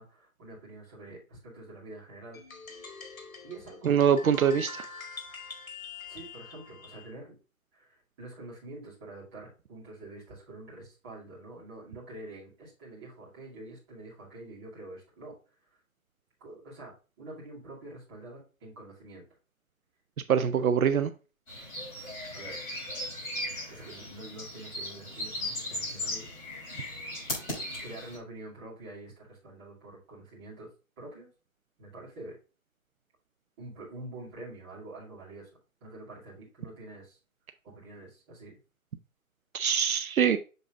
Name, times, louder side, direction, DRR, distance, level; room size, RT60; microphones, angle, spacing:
voice 1, 0.0-2.4 3.4-3.9 6.1-7.4 7.7-15.3 16.4-19.2 20.4-20.6 22.3-22.6 23.7-26.3 27.8-30.7 31.0-31.3 31.8-32.4 33.6-35.5 35.8-37.2 37.6-38.6, right 2 dB, 20° right, -7 dB, 2.4 m, -46 dB
sound 1, 2.3-7.1, left 4 dB, 75° left, 1.7 m, -45 dB
voice 2, 3.8-4.9 20.3-21.1 39.5-40.4, right 8 dB, 80° right, 11 dB, 0.7 m, -24 dB
sound 2, 21.5-28.2, left 1 dB, 15° left, 3.7 m, -37 dB
6.8 x 3.9 x 3.7 m, 0.34 s
hypercardioid pair, 165°, 42 cm